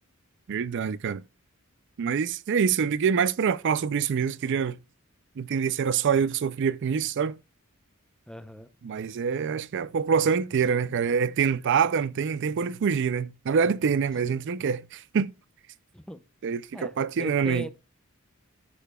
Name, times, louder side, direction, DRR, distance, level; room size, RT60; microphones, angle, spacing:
voice 1, 0.5-1.2 2.0-4.8 5.4-7.4 8.8-15.3 16.4-17.7, right 6 dB, 55° right, 0.4 m, -25 dB
voice 2, 8.3-8.7 14.2-14.4 15.9-16.2 16.7-17.7, equal, 5° left, 0.6 m, -40 dB
15.0 x 6.7 x 2.3 m
head